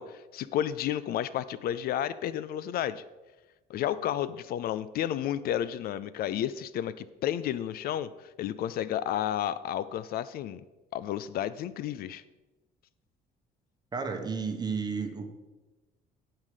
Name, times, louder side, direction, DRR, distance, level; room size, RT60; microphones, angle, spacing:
voice 1, 0.0-3.0 3.7-10.6 10.9-12.2, left 11 dB, 65° left, 16 dB, 0.4 m, -32 dB
voice 2, 13.9-15.3, right 5 dB, 25° right, 5 dB, 1.2 m, -32 dB
10.5 x 5.6 x 4.9 m, 1.1 s
cardioid pair, 110°, 17 cm